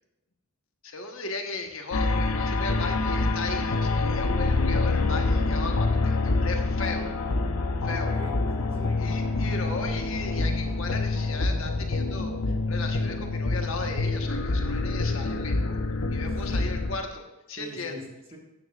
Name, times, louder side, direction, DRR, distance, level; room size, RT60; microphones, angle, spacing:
voice 1, 0.8-7.1 7.8-8.2 9.0-15.8 16.1-18.0, left 3 dB, 65° left, 3 dB, 1.3 m, -36 dB
sound 1, 1.9-17.0, left 3 dB, 90° left, 0.8 m, -26 dB
voice 2, 7.8-9.0 16.2-16.7 17.6-18.4, equal, 25° right, -1 dB, 1.6 m, -42 dB
14.0 x 9.6 x 2.5 m, 0.95 s
head